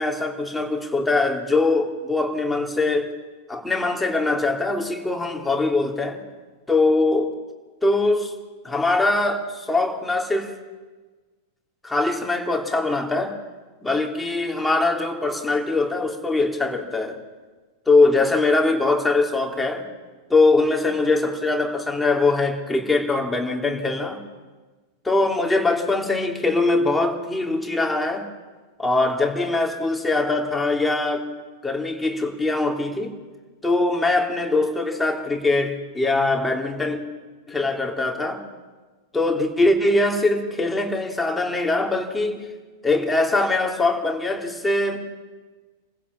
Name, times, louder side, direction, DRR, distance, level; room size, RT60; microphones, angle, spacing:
voice 1, 0.0-3.1 3.5-6.2 6.7-7.3 7.8-8.3 8.6-10.5 11.8-13.4 13.8-17.2 17.9-19.8 20.3-24.2 25.0-28.3 28.8-31.3 31.6-33.1 33.6-37.0 37.5-38.4 39.1-42.4 42.8-45.0, left 2 dB, 10° left, 1 dB, 3.2 m, -22 dB
28.5 x 16.0 x 7.2 m, 1.3 s
figure-of-eight pair, 90°, 0 cm